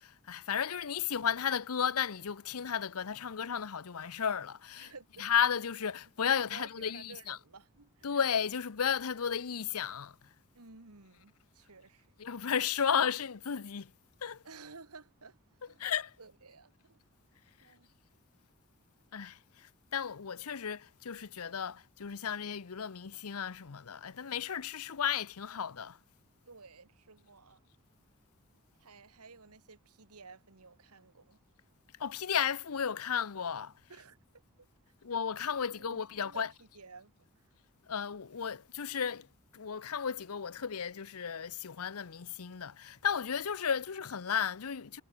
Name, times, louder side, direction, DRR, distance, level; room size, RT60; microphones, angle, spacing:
voice 1, 0.0-4.9 5.2-7.4 8.0-10.1 12.2-13.9 14.2-14.4 15.8-16.1 19.1-19.4 19.9-26.0 32.0-33.7 35.0-36.5 37.9-39.3 39.5-45.0, left 7 dB, 75° left, 0.7 m, -34 dB
voice 2, 4.8-5.3 6.3-8.1 10.5-12.1 14.4-15.8 16.2-17.0 17.6-17.9 26.5-27.6 28.8-31.4 33.9-34.2 34.9-35.0 35.5-37.5 43.7-43.8, right 4 dB, 85° right, 2.2 m, -54 dB
head